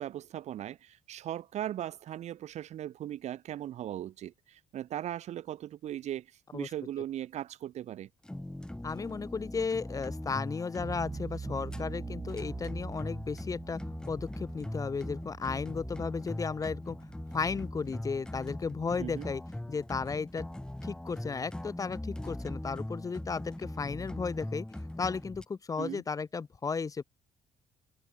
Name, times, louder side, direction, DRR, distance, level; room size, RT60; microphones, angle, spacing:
voice 1, 0.0-6.3 6.5-8.1 19.0-19.3 25.8-26.0, right 12 dB, 70° right, 3.4 m, -38 dB
sound 1, 8.2-25.4, left 1 dB, 5° left, 3.8 m, -41 dB
voice 2, 8.8-13.8 14.1-17.0 17.3-19.4 19.7-20.5 20.8-24.6 25.0-27.0, left 5 dB, 30° left, 1.2 m, -34 dB
sound 2, 10.8-21.7, right 5 dB, 30° right, 3.6 m, -46 dB
cardioid pair, 110°, 12 cm